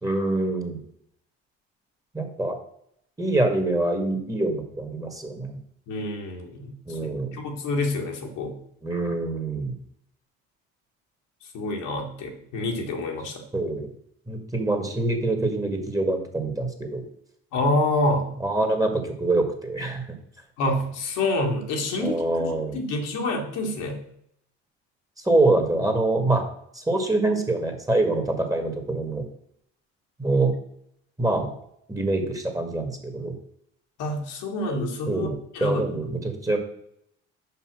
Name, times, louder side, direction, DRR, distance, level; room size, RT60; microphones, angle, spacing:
voice 1, 0.0-0.8 2.1-2.6 3.2-5.6 6.9-7.3 8.8-9.7 13.5-13.9 14.3-17.0 18.4-20.0 22.0-22.8 25.2-26.5 26.7-29.2 30.2-30.5 31.2-31.5 31.9-33.3 35.1-35.4 35.6-36.6, right 2 dB, 10° right, 4 dB, 1.9 m, -25 dB
voice 2, 5.9-7.0 7.3-8.6 11.5-13.4 17.5-18.3 20.6-24.0 34.0-35.3 35.5-35.9, left 2 dB, 70° left, 1 dB, 1.9 m, -27 dB
5.7 x 5.5 x 6.2 m, 0.71 s
supercardioid pair, 70°, 32 cm